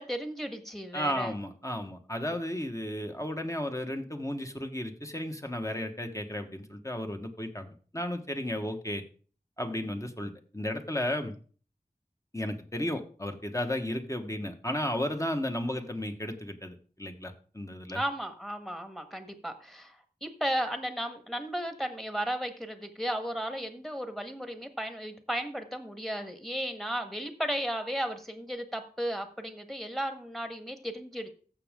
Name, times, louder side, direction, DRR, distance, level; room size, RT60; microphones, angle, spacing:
voice 1, 0.0-1.3 17.9-31.3, equal, ahead, 7 dB, 1.5 m, -35 dB
voice 2, 0.9-7.7 7.9-9.0 9.6-11.4 12.3-18.0, left 1 dB, 20° left, 5 dB, 1.3 m, -34 dB
14.5 x 6.3 x 3.7 m, 0.41 s
wide cardioid pair, 40°, 16 cm